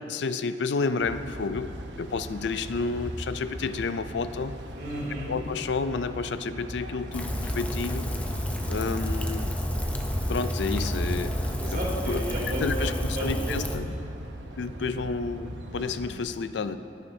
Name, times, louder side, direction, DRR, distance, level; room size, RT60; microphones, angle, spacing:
voice 1, 0.1-1.7 2.0-4.5 5.3-8.0 8.7-9.6 10.3-11.3 12.1-12.2 12.6-12.9 13.2-13.9 14.6-16.8, left 4 dB, 75° left, 12 dB, 0.4 m, -30 dB
sound 1, 1.0-16.2, right 1 dB, 80° right, 0.9 m, -40 dB
voice 2, 4.7-5.4 11.6-13.5 14.8-15.2, equal, 65° right, -5 dB, 3.1 m, -33 dB
Rain, 7.1-13.8, equal, 10° left, 0.6 m, -30 dB
22.0 x 8.4 x 2.8 m, 2.6 s
head